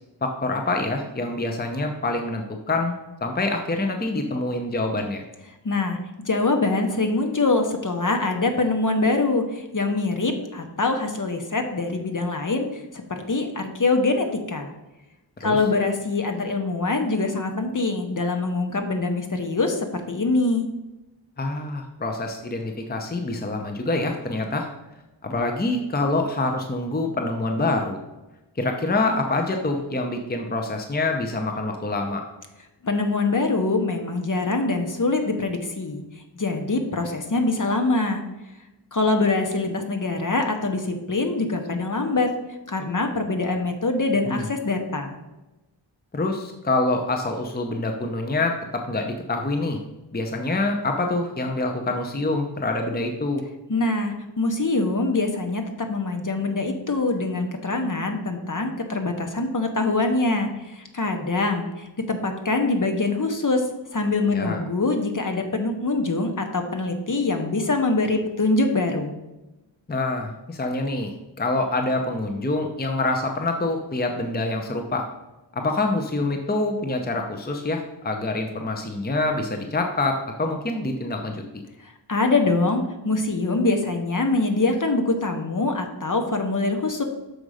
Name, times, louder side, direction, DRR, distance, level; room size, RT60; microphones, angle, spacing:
voice 1, 0.2-3.0 3.2-5.2 15.4-15.6 21.4-24.7 25.2-28.0 28.6-32.2 44.3-44.5 46.1-49.8 50.1-53.4 64.3-64.6 69.9-75.1 75.5-81.4, left 2 dB, 20° left, 4 dB, 0.7 m, -26 dB
voice 2, 5.6-14.7 15.4-20.7 32.8-36.0 36.3-38.2 38.9-42.3 42.7-45.2 53.7-55.6 55.9-63.6 63.9-69.2 81.8-87.0, left 3 dB, 45° left, 5 dB, 1.0 m, -24 dB
6.4 x 5.1 x 4.9 m, 1.0 s
wide cardioid pair, 75°, 45 cm